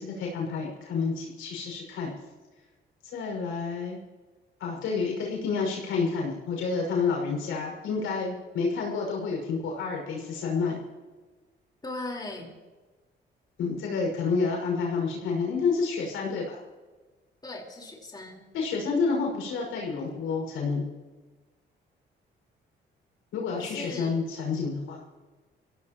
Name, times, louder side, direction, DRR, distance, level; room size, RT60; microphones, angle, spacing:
voice 1, 0.0-2.1 3.1-4.0 4.6-10.8 13.6-16.6 18.5-20.8 23.3-25.0, left 4 dB, 90° left, 0 dB, 5.8 m, -29 dB
voice 2, 11.8-12.5 17.4-18.4 23.6-24.2, left 2 dB, 20° left, -1 dB, 4.3 m, -38 dB
24.5 x 16.5 x 3.0 m, 1.3 s
cardioid pair, 90°, 20 cm